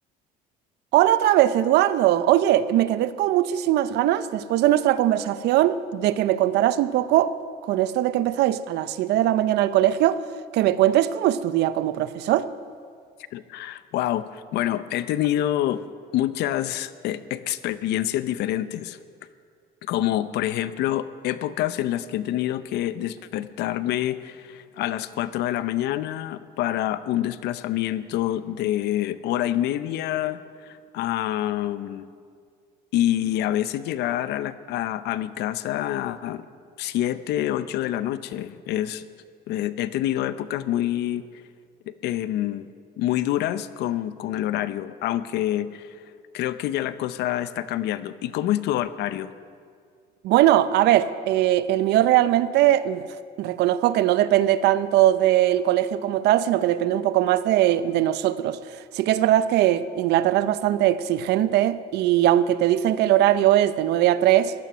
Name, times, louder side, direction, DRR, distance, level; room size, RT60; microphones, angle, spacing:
voice 1, 0.9-7.3 7.6-10.2 10.5-12.5 50.2-53.1 53.4-58.6 58.9-64.5, right 13 dB, 80° right, 0.6 m, -20 dB
voice 2, 13.3-15.8 16.1-19.0 19.8-32.1 32.9-36.4 36.8-39.1 39.5-41.2 41.9-42.7 43.0-46.0 46.3-49.3, left 13 dB, 80° left, 0.7 m, -27 dB
15.5 x 12.0 x 6.1 m
cardioid pair, 110°, 17 cm